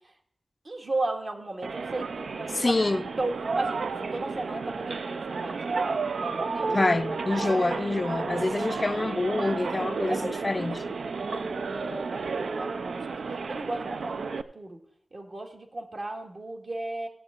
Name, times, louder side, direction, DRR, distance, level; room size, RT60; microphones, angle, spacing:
voice 1, 0.6-2.7 3.2-6.8 7.4-7.7 8.4-8.6 10.1-14.8 15.1-17.1, right 2 dB, 60° right, 1.9 m, -35 dB
sound 1, 1.6-14.4, right 4 dB, 85° right, 0.4 m, -32 dB
voice 2, 2.5-3.0 6.7-10.8, left 2 dB, 40° left, 0.3 m, -26 dB
16.5 x 7.8 x 3.7 m
cardioid pair, 50°, 0 cm